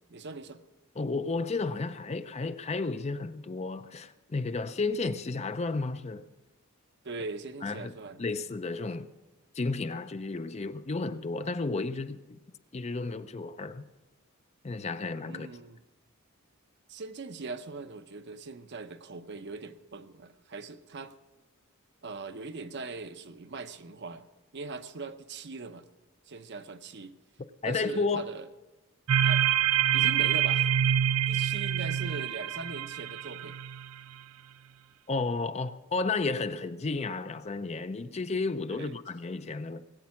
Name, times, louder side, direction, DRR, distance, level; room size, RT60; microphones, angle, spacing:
voice 1, 0.1-0.6 7.0-8.2 15.3-15.8 16.9-21.1 22.0-24.2 24.5-25.8 26.3-27.1 27.6-28.5 29.2-29.4 29.9-30.7 31.3-33.6 38.7-39.0, right 3 dB, 55° right, 0.7 m, -41 dB
voice 2, 1.0-6.3 7.6-7.9 8.2-9.1 9.5-12.4 12.7-13.9 14.6-15.5 27.6-28.3 35.1-39.8, left 3 dB, 30° left, 0.5 m, -32 dB
sound 1, 29.1-33.9, right 10 dB, 70° right, 0.4 m, -26 dB
19.5 x 8.5 x 5.9 m
head